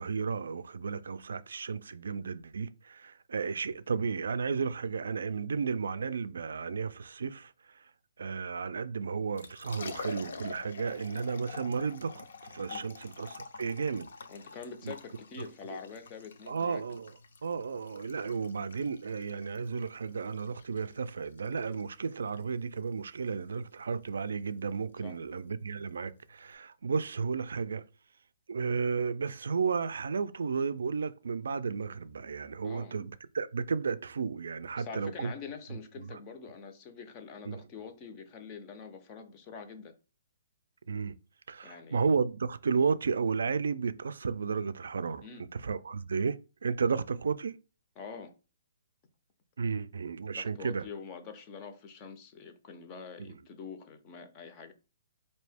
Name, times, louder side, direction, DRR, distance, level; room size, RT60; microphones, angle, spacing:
voice 1, 0.0-7.5 8.2-14.1 14.8-14.9 15.7-15.8 16.5-27.8 28.5-35.3 36.0-36.2 37.4-37.6 40.9-41.2 41.5-45.2 45.5-47.6 49.6-50.9, right 5 dB, 85° right, 0.3 m, -33 dB
Liquid, 9.2-26.5, left 4 dB, 70° left, 0.5 m, -48 dB
voice 2, 14.3-16.8 25.0-25.2 32.6-33.0 34.8-40.0 41.6-42.1 45.2-45.5 48.0-48.3 50.3-54.7, left 5 dB, 20° left, 0.4 m, -45 dB
4.3 x 2.7 x 3.4 m
hypercardioid pair, 170°, 0 cm